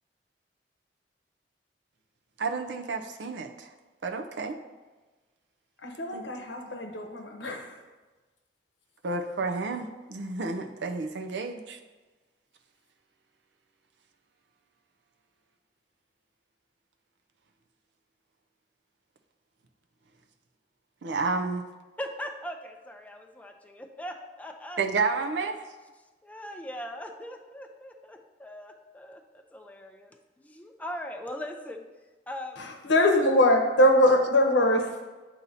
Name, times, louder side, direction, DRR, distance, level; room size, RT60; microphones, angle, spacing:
voice 1, 2.4-3.7 4.0-4.6 6.1-6.2 6.6-6.8 9.0-11.8 21.0-21.6 24.8-25.6, right 4 dB, 70° right, 5 dB, 0.5 m, -31 dB
voice 2, 5.8-7.7 32.8-35.0, left 1 dB, 80° left, 3 dB, 0.8 m, -22 dB
voice 3, 22.0-24.8 25.4-25.6 26.2-31.9 32.3-32.7, equal, 10° left, 4 dB, 0.4 m, -40 dB
8.2 x 2.8 x 4.1 m, 1.2 s
head